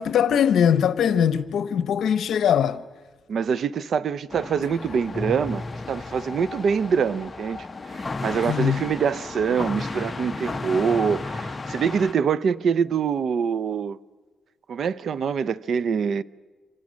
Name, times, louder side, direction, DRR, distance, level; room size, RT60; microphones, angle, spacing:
voice 1, 0.0-2.8 8.5-8.8, left 8 dB, 80° left, 0.8 m, -21 dB
voice 2, 3.3-14.0 14.7-16.2, right 6 dB, 65° right, 0.7 m, -25 dB
sound 1, 4.3-12.1, left 3 dB, 30° left, 0.9 m, -33 dB
26.5 x 26.0 x 6.4 m
cardioid pair, 95°, 0 cm